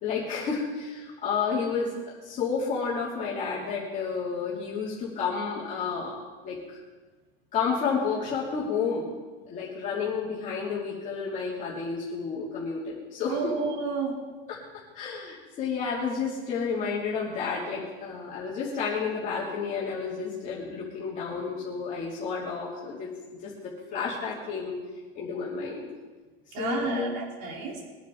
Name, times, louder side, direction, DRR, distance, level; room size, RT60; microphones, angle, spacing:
voice 1, 0.0-1.9 2.2-6.1 6.4-6.8 7.5-9.1 9.5-13.6 14.5-14.6 14.9-23.1 23.4-24.7 25.1-25.9 26.6-27.1, left 5 dB, 25° left, -6 dB, 2.8 m, -31 dB
voice 2, 13.3-14.1 26.5-27.8, right 4 dB, 50° right, -2 dB, 3.8 m, -31 dB
22.5 x 10.0 x 3.9 m, 1.3 s
supercardioid pair, 175°, 29 cm